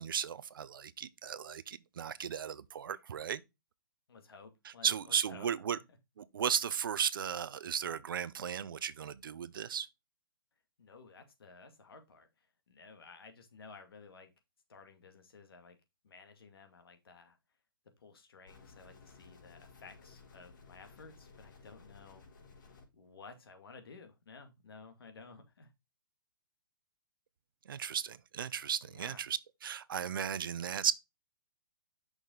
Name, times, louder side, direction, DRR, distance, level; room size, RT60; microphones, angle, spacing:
voice 1, 0.0-3.4 4.6-5.8 6.2-9.9 27.7-30.9, right 8 dB, 65° right, 0.6 m, -35 dB
voice 2, 4.1-5.8 10.8-14.3 14.7-15.8 16.0-17.4 18.0-22.3 22.9-25.7 28.8-29.2, left 4 dB, 80° left, 2.2 m, -55 dB
sound 1, 18.5-22.9, left 4 dB, 55° left, 3.5 m, -57 dB
6.2 x 5.3 x 3.8 m
hypercardioid pair, 165°, 12 cm